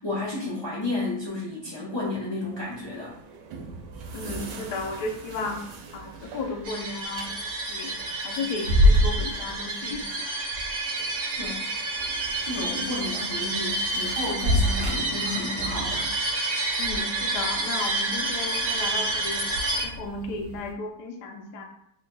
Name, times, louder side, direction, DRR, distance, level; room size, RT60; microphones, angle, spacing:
voice 1, 0.0-3.1 11.4-11.6 12.4-16.1, left 2 dB, 40° left, -7 dB, 0.4 m, -32 dB
sound 1, 2.4-20.7, left 1 dB, 90° right, 1.2 m, -31 dB
voice 2, 4.1-5.6 5.9-7.9 8.2-10.0 16.8-19.4 19.8-21.6, left 3 dB, 80° left, 2 dB, 1.2 m, -34 dB
sound 2, 6.6-19.8, right 2 dB, 60° right, 1.2 m, -29 dB
3.2 x 2.2 x 3.8 m, 0.70 s
omnidirectional pair, 1.8 m